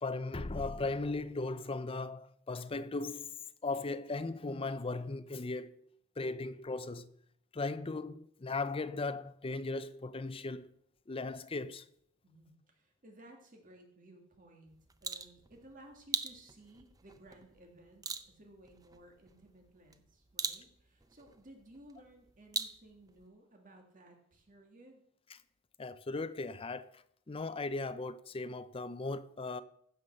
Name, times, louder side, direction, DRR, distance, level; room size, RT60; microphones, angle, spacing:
voice 1, 0.0-5.9 6.2-7.1 7.5-10.7 11.1-11.8 25.8-29.6, left 3 dB, 25° left, 0.5 m, -37 dB
voice 2, 12.2-14.7 15.0-25.0, right 1 dB, 40° right, 1.9 m, -58 dB
sound 1, 14.7-23.3, right 5 dB, 20° right, 0.6 m, -43 dB
15.5 x 5.6 x 6.5 m
head